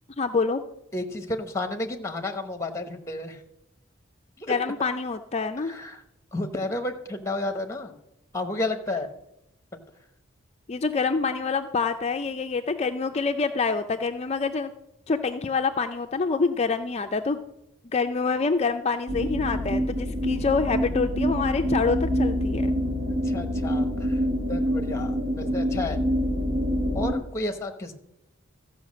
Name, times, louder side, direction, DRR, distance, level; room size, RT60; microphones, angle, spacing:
voice 1, 0.2-0.6 4.5-5.7 10.7-14.7 15.1-17.4 17.8-22.7, left 4 dB, 30° left, 7 dB, 0.4 m, -26 dB
voice 2, 0.9-3.4 4.4-4.5 5.6-6.0 6.3-7.9 8.3-9.1 23.2-24.2 24.5-26.0 26.9-27.9, left 2 dB, 15° left, 7 dB, 1.0 m, -31 dB
sound 1, 19.1-27.1, equal, 60° right, 2.1 m, -26 dB
14.5 x 5.7 x 7.4 m, 0.85 s
head